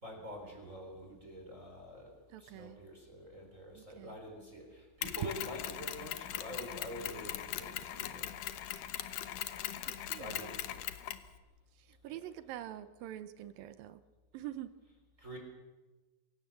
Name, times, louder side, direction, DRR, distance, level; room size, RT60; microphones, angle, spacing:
voice 1, 0.0-2.1 2.4-8.3 10.2-10.8 12.1-12.2 15.2-15.4, equal, 20° right, 1 dB, 4.0 m, -46 dB
voice 2, 2.3-2.8 3.8-4.2 10.1-10.4 12.0-14.0 14.3-14.7, right 12 dB, 80° right, 13 dB, 2.5 m, -45 dB
Mechanisms, 5.0-11.3, left 12 dB, 70° left, 2.6 m, -40 dB
26.5 x 17.0 x 7.8 m, 1.2 s
omnidirectional pair, 4.1 m